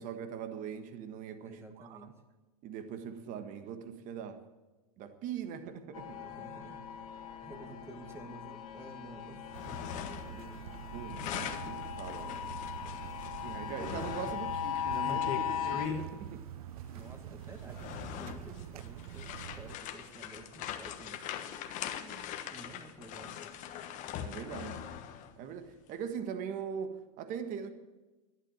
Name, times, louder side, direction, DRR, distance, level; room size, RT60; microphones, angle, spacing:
voice 1, 0.0-2.1 2.6-4.4 5.0-6.2 10.9-12.4 13.4-16.5 24.2-24.9 25.4-27.7, right 7 dB, 45° right, 1.5 m, -41 dB
voice 2, 1.4-2.1 6.1-7.0 7.4-10.7 16.9-21.4 22.0-23.4, right 2 dB, 15° right, 2.1 m, -51 dB
sound 1, 5.9-15.9, left 10 dB, 75° left, 2.2 m, -39 dB
sound 2, 9.4-10.4 10.7-16.1 16.9-17.1 17.6-25.4, left 9 dB, 40° left, 1.2 m, -42 dB
sound 3, 9.5-19.8, right 10 dB, 75° right, 0.7 m, -46 dB
11.5 x 11.0 x 8.7 m
hypercardioid pair, 115°, 19 cm